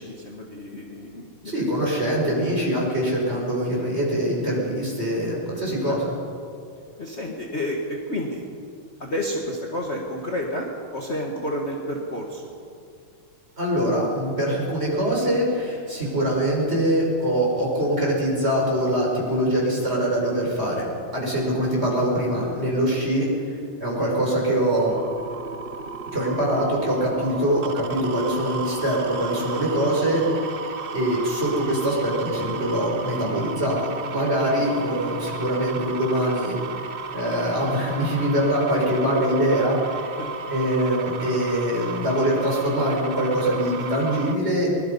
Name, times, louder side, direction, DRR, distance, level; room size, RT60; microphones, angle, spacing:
voice 1, 0.0-1.7 5.9-6.0 7.0-8.4 9.0-12.5 21.6-21.7 34.6-34.7 40.2-40.3, left 1 dB, 35° left, -1 dB, 1.9 m, -30 dB
voice 2, 1.4-6.1 13.6-20.9 21.1-23.3 23.8-25.0 26.1-30.2 30.9-36.6 37.1-40.0 40.5-44.7, equal, 30° right, -3 dB, 6.3 m, -23 dB
sound 1, 24.8-44.4, right 5 dB, 70° right, 0.5 m, -34 dB
23.0 x 22.0 x 5.5 m, 2.4 s
omnidirectional pair, 2.2 m